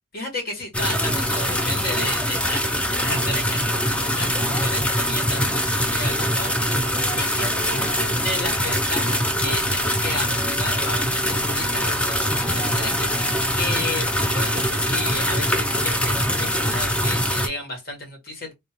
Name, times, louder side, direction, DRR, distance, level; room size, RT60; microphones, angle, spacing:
voice 1, 0.1-6.5 6.8-18.5, left 1 dB, 50° left, 1.5 m, -33 dB
sound 1, 0.7-17.5, equal, 5° left, 0.4 m, -23 dB
3.5 x 2.7 x 3.0 m
head